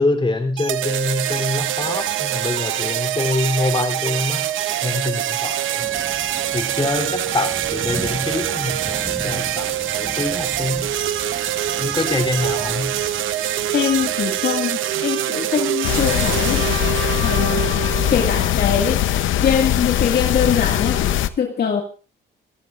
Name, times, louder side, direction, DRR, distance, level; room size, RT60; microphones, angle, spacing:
voice 1, 0.0-4.4 4.8-5.8 6.5-10.9 11.8-13.0, left 2 dB, 25° left, 5 dB, 3.4 m, -25 dB
sound 1, 0.6-18.5, right 12 dB, 80° right, 0.9 m, -24 dB
Thunder / Rain, 5.8-14.6, right 1 dB, 5° right, 1.8 m, -38 dB
voice 2, 13.7-16.6 17.2-17.7 18.1-19.0 19.4-21.8, left 7 dB, 55° left, 2 dB, 2.1 m, -22 dB
sound 2, 15.8-21.3, left 11 dB, 75° left, 0.8 m, -21 dB
26.0 x 14.5 x 2.5 m, 0.36 s
cardioid pair, 90°, 20 cm